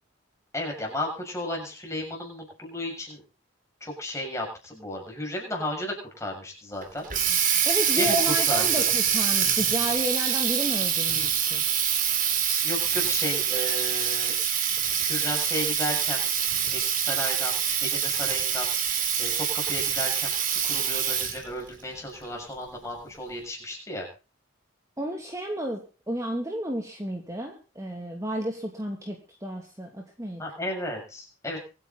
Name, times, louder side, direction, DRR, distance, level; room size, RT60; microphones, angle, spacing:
voice 1, 0.5-3.2 3.8-7.1 8.0-8.9 12.5-14.4 15.0-16.3 16.7-24.1 30.4-31.6, left 1 dB, 15° left, 0 dB, 6.9 m, -34 dB
Water tap faucet, 6.8-21.5, right 8 dB, 45° right, 3.1 m, -25 dB
voice 2, 7.6-11.6 25.0-25.8 26.1-30.4, equal, 15° right, 2 dB, 2.5 m, -32 dB
25.0 x 9.7 x 4.0 m, 0.34 s
head